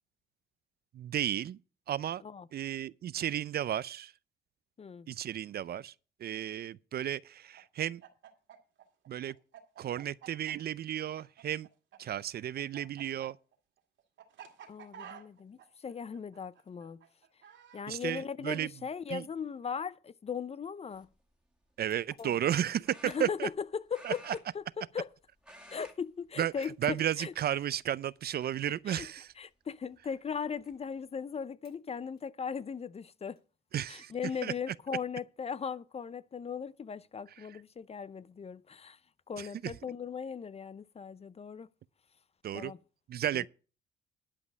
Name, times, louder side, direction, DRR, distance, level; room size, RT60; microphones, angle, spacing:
voice 1, 0.9-1.6 1.9-2.2 2.5-4.1 5.1-5.9 6.2-8.0 9.1-9.3 9.8-11.7 12.0-13.4 17.9-18.7 19.1-19.2 21.8-23.5 24.0-24.3 26.4-26.5 26.8-29.3 33.7-34.1 34.4-34.5 39.4-39.5 42.4-42.7 43.1-43.5, right 11 dB, 55° right, 0.4 m, -33 dB
Chicken rooster, 7.5-12.0 12.2-17.9, right 9 dB, 70° right, 2.1 m, -51 dB
voice 2, 14.7-17.0 17.7-21.1 22.2-22.4 23.0-25.1 25.7-27.3 28.9-29.1 29.4-33.4 33.9-39.0 39.3-41.7 42.5-42.8 43.3-43.5, left 6 dB, 30° left, 0.5 m, -38 dB
sound 1, 20.9-21.2 22.8-23.6 23.9-25.1 25.4-26.0 26.3-26.5 27.3-27.8 28.4-28.5 30.0-30.1 30.4-30.8, equal, 5° right, 2.0 m, -53 dB
sound 2, 21.9-22.8 24.2-24.6 25.1-25.2 26.6-26.9 27.5-27.6 28.3-28.4 29.4-29.7 30.0-30.1 30.8-30.9 31.6-31.9 32.1-33.6 34.1-34.3 34.8-35.2, left 4 dB, 55° left, 6.9 m, -70 dB
11.5 x 5.2 x 8.4 m
cardioid pair, 90°, 20 cm